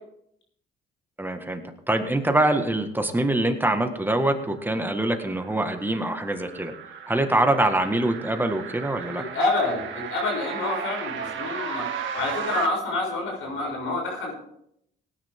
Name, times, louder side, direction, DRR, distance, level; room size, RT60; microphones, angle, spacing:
voice 1, 1.2-1.6 1.9-6.7 7.1-9.2, right 1 dB, 10° right, 6 dB, 1.7 m, -24 dB
sound 1, 4.3-12.7, right 8 dB, 75° right, 1.7 m, -36 dB
voice 2, 9.3-9.9 10.1-11.9 12.1-14.3, left 2 dB, 80° left, -1 dB, 6.9 m, -27 dB
18.0 x 10.0 x 3.7 m, 0.72 s
cardioid pair, 90°, 20 cm